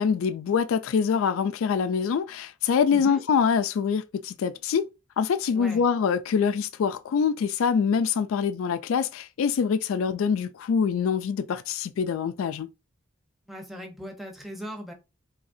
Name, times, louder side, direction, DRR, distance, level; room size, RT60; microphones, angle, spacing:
voice 1, 0.0-4.8 5.2-12.7, left 6 dB, 65° left, 0.3 m, -25 dB
voice 2, 2.9-3.2 5.5-5.9 13.5-14.9, equal, ahead, 0.8 m, -38 dB
4.8 x 2.8 x 2.6 m
head